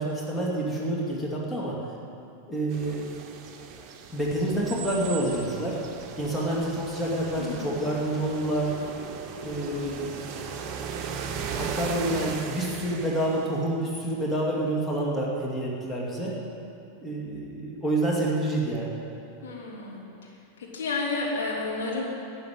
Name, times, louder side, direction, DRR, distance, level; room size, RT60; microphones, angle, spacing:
voice 1, 0.0-1.8 2.5-3.1 4.1-5.8 6.2-8.7 9.4-10.1 11.4-16.4 17.0-19.0, right 1 dB, 10° left, -4 dB, 2.7 m, -28 dB
sound 1, 2.7-13.6, right 6 dB, 35° right, 1.1 m, -37 dB
voice 2, 7.4-7.8 9.4-10.0 19.4-20.1 20.6-22.0, left 3 dB, 60° left, -3 dB, 3.1 m, -32 dB
12.5 x 9.1 x 9.2 m, 2.7 s
figure-of-eight pair, 90°, 0 cm